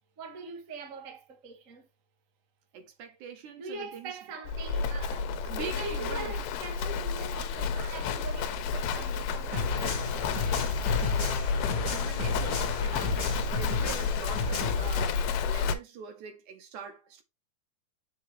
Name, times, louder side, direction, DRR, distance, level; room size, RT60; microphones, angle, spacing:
voice 1, 0.2-1.8 3.6-10.0, right 3 dB, 55° right, 0.9 m, -42 dB
voice 2, 2.7-4.2 5.4-6.4 11.2-11.5 11.9-17.2, right 6 dB, 70° right, 2.1 m, -43 dB
Livestock farm animals working animals, 4.4-15.7, left 5 dB, 85° left, 2.7 m, -31 dB
sound 1, 9.5-14.9, left 4 dB, 40° left, 1.6 m, -33 dB
8.0 x 5.3 x 3.1 m
omnidirectional pair, 4.2 m